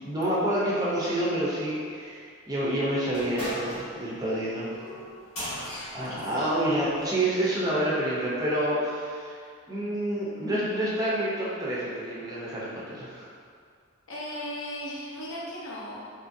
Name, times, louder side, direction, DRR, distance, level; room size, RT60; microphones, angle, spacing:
voice 1, 0.0-4.7 5.9-9.4 9.7-13.3, right 1 dB, 15° right, -7 dB, 0.4 m, -28 dB
sound 1, 3.1-7.2, equal, 85° left, 1.3 m, -39 dB
voice 2, 6.0-6.5 14.1-16.1, left 1 dB, 65° left, -5 dB, 0.6 m, -37 dB
2.8 x 2.4 x 2.5 m, 2.2 s
head